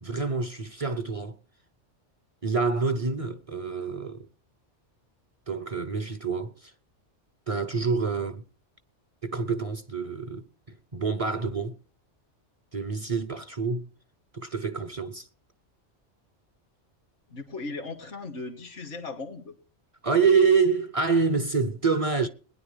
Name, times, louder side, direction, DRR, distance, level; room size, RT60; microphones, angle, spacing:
voice 1, 0.0-1.4 2.4-4.3 5.5-6.7 7.5-8.4 9.2-11.8 12.7-13.9 14.3-15.3 20.0-22.3, right 5 dB, 35° right, 0.7 m, -27 dB
voice 2, 17.3-19.6, left 3 dB, 80° left, 2.1 m, -37 dB
21.0 x 10.0 x 3.3 m
omnidirectional pair, 1.2 m